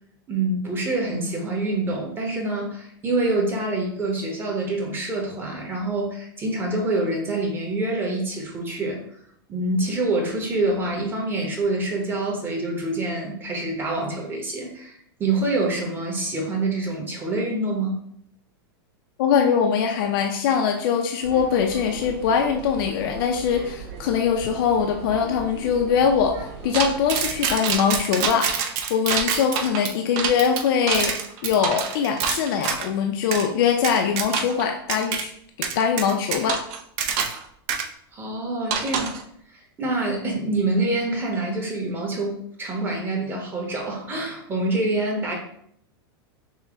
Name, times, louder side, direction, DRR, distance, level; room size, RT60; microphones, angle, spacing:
voice 1, 0.3-9.0 9.5-17.9 38.1-39.2 39.5-45.3, right 2 dB, 15° right, -1 dB, 1.1 m, -26 dB
voice 2, 19.2-28.6 28.9-31.1 31.4-35.3 35.6-36.6, left 7 dB, 60° left, 3 dB, 0.5 m, -22 dB
sound 1, 21.2-27.6, right 4 dB, 70° right, 1.6 m, -39 dB
sound 2, 26.7-32.9 33.3-33.5 33.8-34.6 34.9-35.2 35.6-37.4 37.7-37.8 38.7-39.2, right 7 dB, 45° right, 0.6 m, -26 dB
5.5 x 2.2 x 3.7 m, 0.68 s
supercardioid pair, 145°, 13 cm